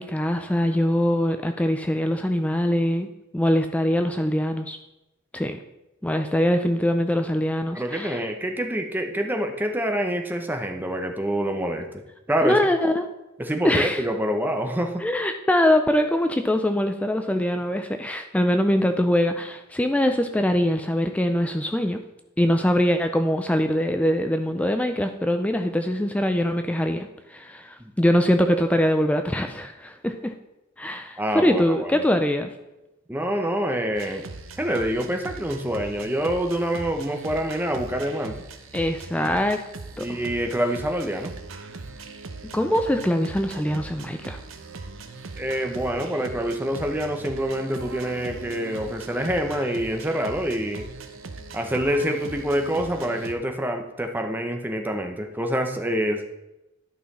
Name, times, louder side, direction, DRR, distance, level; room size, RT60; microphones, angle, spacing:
voice 1, 0.0-3.1 3.3-4.8 5.3-5.6 6.0-8.2 12.4-13.1 13.6-14.0 15.0-22.0 22.4-30.3 30.8-32.5 38.7-39.6 40.0-40.2 42.5-44.4, left 1 dB, 5° left, 7 dB, 0.4 m, -23 dB
voice 2, 7.7-11.9 12.3-12.6 13.4-15.0 27.8-27.9 31.2-31.9 33.1-34.2 34.6-38.4 40.0-41.3 45.4-50.9 51.5-56.3, equal, 10° right, 4 dB, 0.8 m, -26 dB
sound 1, 33.9-53.3, right 3 dB, 70° right, 0.8 m, -40 dB
11.0 x 5.7 x 4.2 m, 0.94 s
head